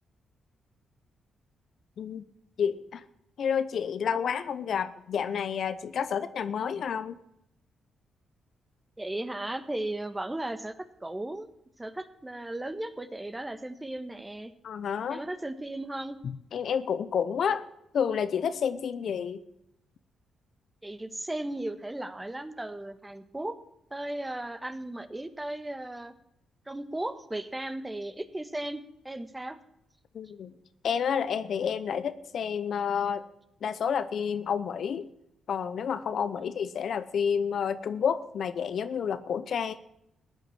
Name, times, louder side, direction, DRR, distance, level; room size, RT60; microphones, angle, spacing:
voice 1, 2.6-3.0 3.4-7.2 14.6-15.2 16.2-17.7 17.9-19.4 30.1-30.5 30.8-33.2 33.6-35.1 35.5-39.8, left 7 dB, 65° left, 13 dB, 0.8 m, -30 dB
voice 2, 9.0-11.5 11.8-14.5 15.1-16.2 20.8-23.6 23.9-26.1 26.7-29.6 36.4-36.5 39.6-39.7, right 1 dB, 15° right, 10 dB, 1.5 m, -36 dB
16.0 x 9.3 x 7.3 m, 0.79 s
supercardioid pair, 60°, 0 cm